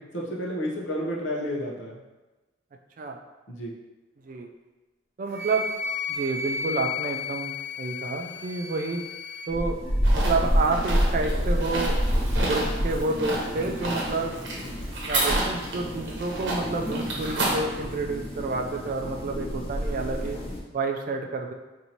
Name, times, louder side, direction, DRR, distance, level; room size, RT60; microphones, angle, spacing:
voice 1, 0.1-1.9 3.5-3.7, equal, 70° left, -2 dB, 0.7 m, -31 dB
voice 2, 5.2-5.7 6.1-9.0 9.5-9.8 10.1-12.0 12.4-14.3 15.1-20.4 20.7-21.5, right 3 dB, 45° right, 3 dB, 0.3 m, -29 dB
Wind instrument woodwind instrument, 5.3-9.5, left 4 dB, 15° right, 0.8 m, -33 dB
sound 1, 9.5-20.6, equal, 30° left, 0.6 m, -28 dB
sound 2, 10.0-17.6, right 2 dB, 65° right, 0.8 m, -31 dB
4.4 x 2.6 x 2.8 m, 1.2 s
head